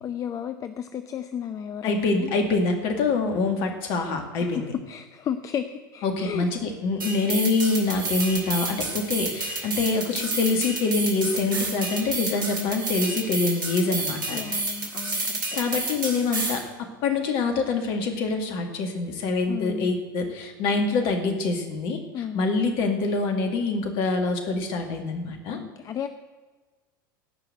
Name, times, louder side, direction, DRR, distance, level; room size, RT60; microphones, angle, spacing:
voice 1, 0.0-2.3 4.4-6.5 14.3-15.6 19.5-20.0 22.1-22.5 25.5-26.1, left 9 dB, 30° left, 10 dB, 0.6 m, -33 dB
voice 2, 1.8-4.7 6.0-14.4 15.5-25.6, left 3 dB, 50° left, 4 dB, 2.3 m, -25 dB
sound 1, 7.0-16.6, right 2 dB, 70° right, 2.6 m, -30 dB
16.5 x 5.9 x 9.1 m, 1.4 s
figure-of-eight pair, 80°, 11 cm